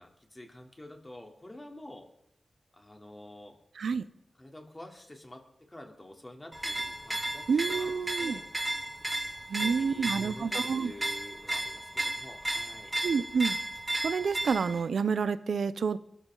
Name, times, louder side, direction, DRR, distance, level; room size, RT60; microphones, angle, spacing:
voice 1, 0.0-2.1 2.7-3.6 4.4-7.9 8.2-8.5 9.5-12.9, left 1 dB, 25° left, 2 dB, 3.3 m, -48 dB
sound 1, 6.5-14.8, right 1 dB, 25° right, 2.8 m, -34 dB
voice 2, 7.5-8.4 9.5-10.9 13.0-13.6 14.0-16.0, right 5 dB, 85° right, 15 dB, 0.7 m, -29 dB
22.5 x 13.0 x 3.9 m, 0.78 s
cardioid pair, 45°, 0 cm